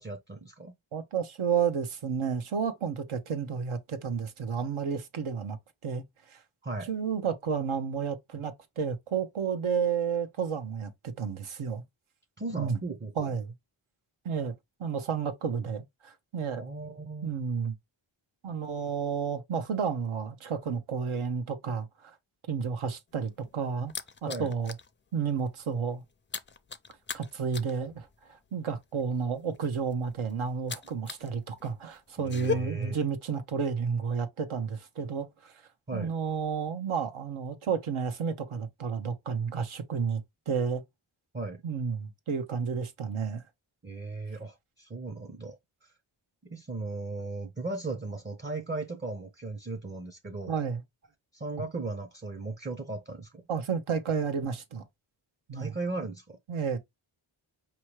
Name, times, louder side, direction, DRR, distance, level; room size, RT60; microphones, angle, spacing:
voice 1, 0.0-0.7 6.6-6.9 12.4-13.3 16.5-17.3 24.3-24.5 32.2-33.0 35.9-36.1 41.3-41.6 43.8-45.9 46.4-50.5 51.3-53.4 55.5-56.4, right 3 dB, 20° right, 0.6 m, -37 dB
voice 2, 0.9-5.6 5.8-6.4 6.9-11.8 12.6-12.8 13.2-13.5 14.2-14.5 14.8-16.6 17.2-17.7 18.4-22.2 22.5-23.9 24.2-24.7 25.1-26.0 27.1-35.5 35.9-40.8 41.6-43.4 50.5-50.8 53.5-54.8 55.5-55.7 56.5-56.8, right 6 dB, 75° right, 0.9 m, -31 dB
sound 1, 23.1-24.9 25.2-25.5 25.7-31.3 31.6-32.5, left 6 dB, 25° left, 0.4 m, -38 dB
4.7 x 3.0 x 3.0 m
cardioid pair, 65°, 49 cm